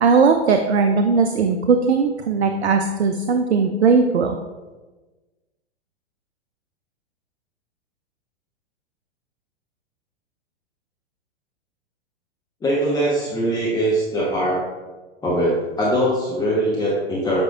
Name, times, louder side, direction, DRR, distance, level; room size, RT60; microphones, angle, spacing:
voice 1, 0.0-4.4, right 5 dB, 75° right, 6 dB, 0.5 m, -18 dB
voice 2, 12.6-14.6 15.2-17.4, right 1 dB, 10° left, -6 dB, 1.0 m, -21 dB
8.1 x 5.2 x 2.3 m, 1.2 s
figure-of-eight pair, 105°, 33 cm